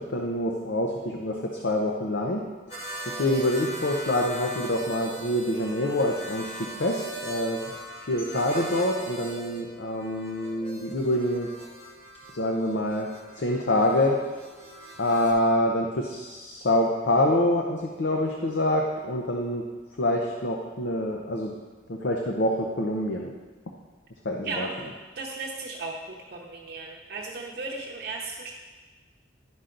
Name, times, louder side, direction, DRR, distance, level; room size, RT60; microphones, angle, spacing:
voice 1, 0.1-2.4 3.1-7.6 8.1-11.5 12.3-13.1 13.4-14.2 15.0-19.6 20.0-21.5 21.9-23.3 24.2-24.7, left 1 dB, 65° left, 0 dB, 0.7 m, -26 dB
sound 1, 2.7-15.3, right 1 dB, 30° left, 2.2 m, -40 dB
voice 2, 24.4-24.7 25.2-28.5, right 3 dB, 50° right, -2 dB, 0.8 m, -35 dB
11.0 x 5.6 x 3.8 m, 1.3 s
head